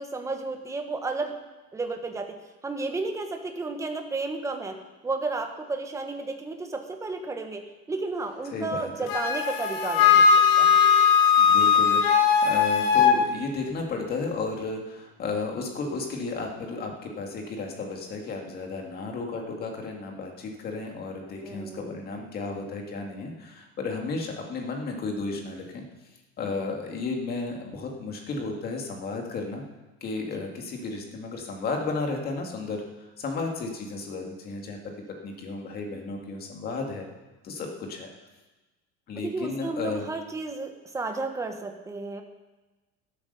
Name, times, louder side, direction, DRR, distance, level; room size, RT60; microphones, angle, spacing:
voice 1, 0.0-1.3 1.7-4.8 5.0-10.3 10.6-10.8 21.4-21.9 30.4-30.5 39.2-42.2, right 3 dB, 10° right, 5 dB, 1.1 m, -32 dB
voice 2, 8.5-9.1 11.4-25.8 26.4-29.6 30.0-34.8 35.2-37.1 37.4-38.1 39.1-40.1, left 3 dB, 30° left, 2 dB, 2.1 m, -33 dB
Wind instrument woodwind instrument, 9.1-13.2, left 6 dB, 75° left, 1.8 m, -19 dB
14.5 x 8.7 x 6.8 m, 1.1 s
cardioid pair, 175°, 31 cm